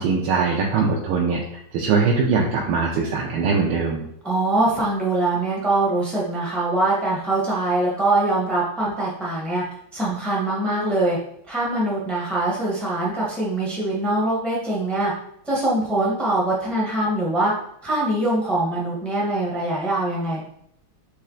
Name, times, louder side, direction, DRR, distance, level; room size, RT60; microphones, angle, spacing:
voice 1, 0.0-1.4 1.7-4.1, right 4 dB, 80° right, -1 dB, 1.5 m, -21 dB
voice 2, 4.2-9.6 9.9-11.2 11.4-15.1 15.4-17.5 17.8-20.4, right 2 dB, ahead, -5 dB, 0.6 m, -23 dB
4.4 x 3.2 x 3.8 m, 0.70 s
omnidirectional pair, 2.3 m